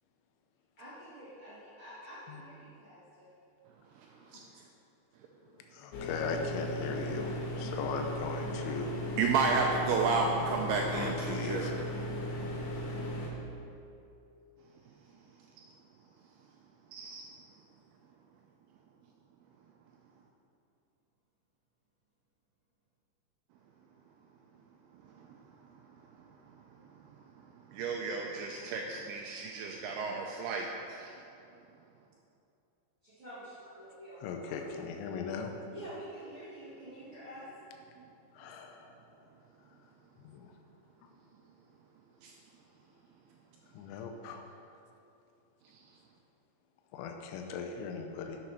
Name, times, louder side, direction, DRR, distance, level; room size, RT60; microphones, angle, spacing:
voice 1, 0.8-3.3 9.1-9.2 12.1-12.5 33.0-34.6 35.7-37.5, right 1 dB, 35° right, -13 dB, 2.4 m, -48 dB
voice 2, 5.7-8.9 10.7-11.9 34.2-35.5 38.4-38.9 40.2-40.5 43.7-44.5 46.9-48.4, left 5 dB, 85° left, 4 dB, 3.0 m, -38 dB
sound 1, 5.9-13.3, equal, 65° left, 2.9 m, -37 dB
voice 3, 9.2-11.7 16.9-17.2 27.7-31.1 42.2-42.3, right 4 dB, 85° right, 1 dB, 2.3 m, -32 dB
11.5 x 7.2 x 4.3 m, 2.7 s
omnidirectional pair, 5.2 m